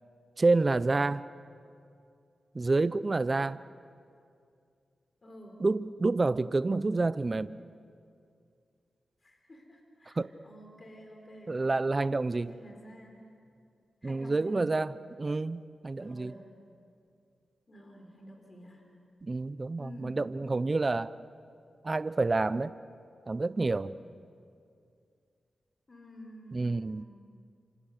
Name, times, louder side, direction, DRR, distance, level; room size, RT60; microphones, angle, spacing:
voice 1, 0.4-1.2 2.5-3.6 5.6-7.6 10.1-10.3 11.5-12.5 14.0-14.9 15.2-16.3 19.2-21.1 21.8-22.7 23.3-24.0 26.5-27.0, right 3 dB, 35° right, 15 dB, 0.6 m, -28 dB
voice 2, 5.2-5.5 9.2-11.5 12.4-13.3 14.0-14.6 16.0-16.4 17.7-18.8 19.8-20.3 25.9-27.1, equal, 40° left, 2 dB, 4.1 m, -50 dB
27.5 x 26.0 x 6.6 m, 2.4 s
cardioid pair, 80°, 0 cm